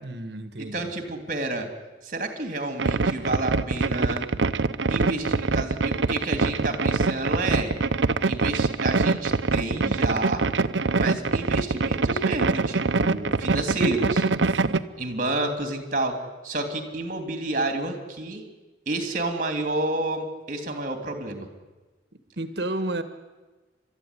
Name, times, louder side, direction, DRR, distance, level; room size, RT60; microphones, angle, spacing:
voice 1, 0.0-0.9 14.5-14.9 22.4-23.0, right 1 dB, 65° right, 10 dB, 1.6 m, -32 dB
voice 2, 0.6-1.7 2.0-4.3 4.9-7.7 8.3-10.5 11.0-14.2 15.0-16.2 16.4-18.4 18.9-21.5, right 2 dB, 45° right, 6 dB, 3.0 m, -30 dB
sound 1, 2.8-14.8, right 3 dB, 90° right, 0.8 m, -24 dB
29.5 x 13.5 x 9.9 m, 1.2 s
head